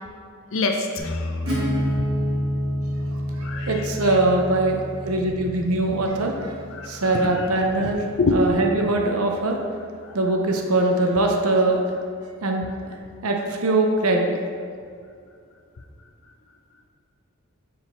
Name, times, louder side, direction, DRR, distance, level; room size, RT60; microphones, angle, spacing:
voice 1, 0.5-1.3 3.4-3.8 6.7-7.5 8.2-8.4 10.1-10.2, left 3 dB, 60° left, 3 dB, 0.5 m, -25 dB
sound 1, 1.0-11.0, left 2 dB, 5° left, 1.0 m, -38 dB
Acoustic guitar / Strum, 1.5-7.0, equal, 60° right, 1.6 m, -28 dB
voice 2, 3.7-4.8 5.0-6.5 6.9-8.0 8.3-9.5 10.1-11.8 12.4-12.9 13.2-14.3, right 2 dB, 80° right, 2 dB, 0.7 m, -22 dB
7.4 x 4.7 x 3.4 m, 2.3 s
head